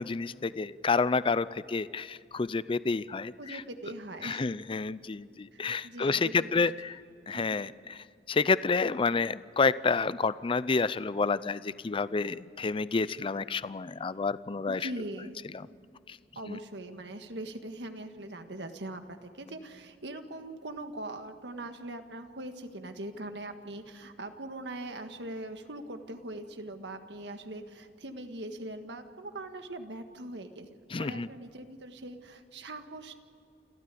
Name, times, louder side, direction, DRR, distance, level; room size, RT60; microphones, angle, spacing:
voice 1, 0.0-3.6 4.2-7.0 7.3-8.0 8.3-14.8 16.5-16.6 30.9-31.3, left 4 dB, 30° left, 17 dB, 0.4 m, -29 dB
voice 2, 3.4-4.5 5.5-6.6 7.3-7.6 14.7-15.4 16.3-30.7 31.0-33.2, right 1 dB, 75° right, 7 dB, 1.7 m, -41 dB
29.0 x 13.0 x 8.5 m, 2.4 s
head